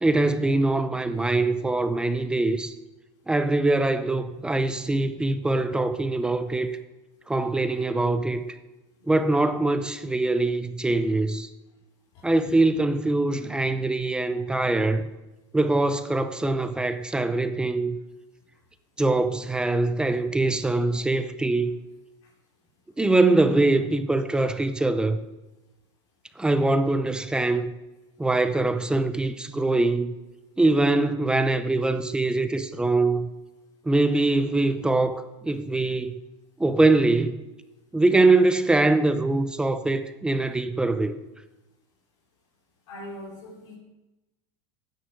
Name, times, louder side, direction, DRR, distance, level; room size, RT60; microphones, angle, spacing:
voice 1, 0.0-2.7 3.3-6.7 7.3-8.4 9.1-11.5 12.2-15.0 15.5-18.0 19.0-21.7 23.0-25.2 26.4-27.7 28.2-30.1 30.6-33.3 33.9-36.1 36.6-37.4 37.9-41.2, right 2 dB, 5° right, 0.5 m, -23 dB
voice 2, 42.9-43.7, left 1 dB, 80° left, 3.7 m, -40 dB
12.5 x 9.5 x 6.3 m
supercardioid pair, 155°, 15 cm